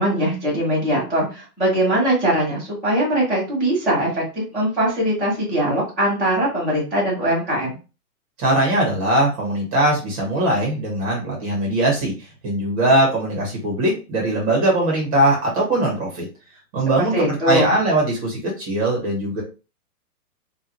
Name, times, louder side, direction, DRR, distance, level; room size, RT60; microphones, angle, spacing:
voice 1, 0.0-4.2 4.5-7.7 17.0-17.8, right 1 dB, ahead, -17 dB, 0.7 m, -21 dB
voice 2, 8.4-12.1 12.4-16.3 16.7-19.4, right 1 dB, 20° right, -2 dB, 0.9 m, -20 dB
3.6 x 2.3 x 2.9 m, 0.32 s
hypercardioid pair, 165°, 47 cm